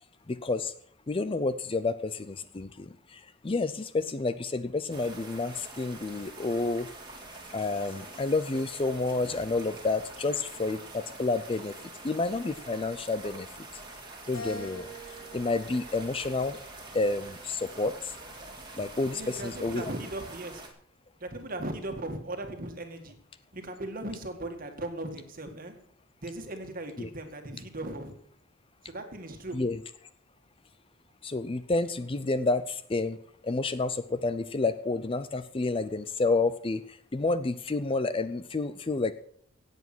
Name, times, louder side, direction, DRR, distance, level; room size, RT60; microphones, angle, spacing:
voice 1, 0.3-0.7 1.1-6.9 7.5-11.7 12.0-13.5 14.3-14.9 15.3-16.6 16.9-18.1 18.8-19.9 27.0-27.1 29.5-29.8 31.2-33.2 33.4-36.8 37.1-39.1, left 3 dB, 25° left, 13 dB, 0.4 m, -29 dB
sound 1, 4.9-20.7, right 2 dB, 20° right, 2.3 m, -46 dB
Keyboard (musical), 14.3-16.8 17.4-18.6, equal, 65° left, 6.1 m, -45 dB
voice 2, 19.1-20.6 21.2-23.2 23.5-25.7 26.2-28.1 28.8-29.6, right 1 dB, 40° right, 6 dB, 1.9 m, -38 dB
16.5 x 8.2 x 6.1 m, 0.64 s
head